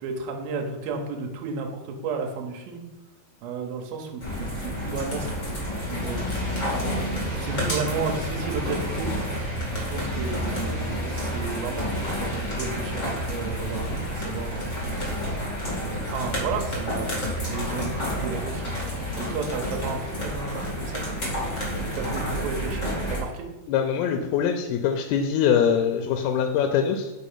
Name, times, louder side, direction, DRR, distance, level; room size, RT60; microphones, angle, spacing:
voice 1, 0.0-2.8 3.4-5.3 5.9-6.4 7.3-9.1 9.7-14.7 15.8-17.1 17.5-21.4 21.8-23.5, right 4 dB, 75° right, 3 dB, 2.5 m, -33 dB
sound 1, 4.2-23.2, equal, 45° left, 0.9 m, -29 dB
voice 2, 23.7-27.1, left 8 dB, 85° left, 4 dB, 2.5 m, -23 dB
5.3 x 4.4 x 5.6 m, 1.1 s
omnidirectional pair, 4.5 m